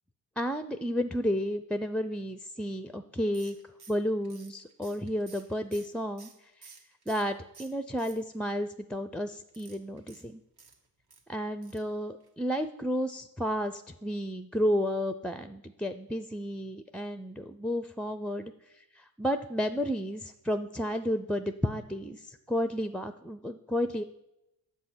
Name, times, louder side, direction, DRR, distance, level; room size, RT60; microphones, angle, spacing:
voice 1, 0.4-3.6 3.9-6.3 6.6-6.7 7.1-10.4 11.3-18.5 18.8-24.0, equal, ahead, 10 dB, 0.4 m, -32 dB
Torque wrench, 3.3-7.3 7.5-8.6 9.5-11.2 11.6-11.9 12.2-12.3 12.6-12.7, right 5 dB, 60° right, 1.5 m, -53 dB
7.8 x 5.5 x 6.0 m, 0.89 s
supercardioid pair, 45°, 44 cm